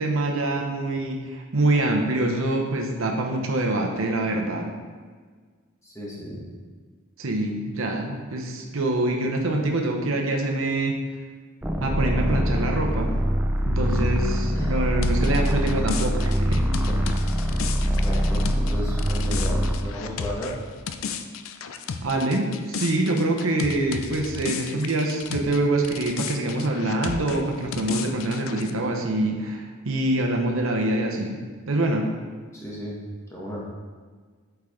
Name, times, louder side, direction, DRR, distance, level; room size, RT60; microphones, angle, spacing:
voice 1, 0.0-4.7 7.2-11.0 11.8-13.1 13.6-16.7 22.0-31.4 31.7-32.1, right 2 dB, 75° right, 2 dB, 0.9 m, -25 dB
voice 2, 5.8-6.4 13.8-14.1 14.5-14.7 16.9-17.0 17.2-17.3 17.9-20.5 32.5-33.0 33.3-33.6, equal, 15° left, -5 dB, 1.4 m, -34 dB
sound 1, 11.6-19.9, equal, 5° right, 0.4 m, -24 dB
sound 2, 15.0-25.6 25.8-28.7, left 6 dB, 75° left, 0.4 m, -34 dB
7.7 x 4.6 x 3.7 m, 1.5 s
head